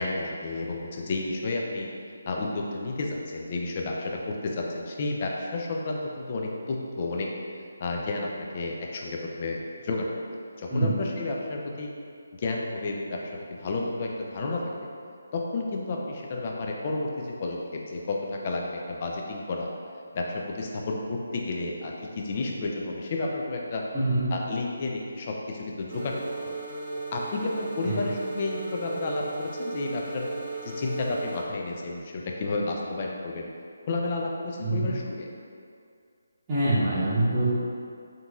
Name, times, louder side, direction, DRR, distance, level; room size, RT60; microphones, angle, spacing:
voice 1, 0.0-1.9 2.3-7.3 7.8-10.1 10.6-11.9 12.3-13.2 13.5-14.8 15.3-19.7 20.1-23.8 24.3-26.6 27.1-30.3 30.6-33.5 33.9-35.3, left 2 dB, 40° left, 0 dB, 0.4 m, -31 dB
voice 2, 23.9-24.4 27.8-28.1 34.6-34.9 36.5-37.5, right 1 dB, 20° right, -14 dB, 0.8 m, -25 dB
sound 1, 25.9-31.4, right 3 dB, 50° right, 0.6 m, -36 dB
3.7 x 2.8 x 2.3 m, 2.3 s
figure-of-eight pair, 155°, 0 cm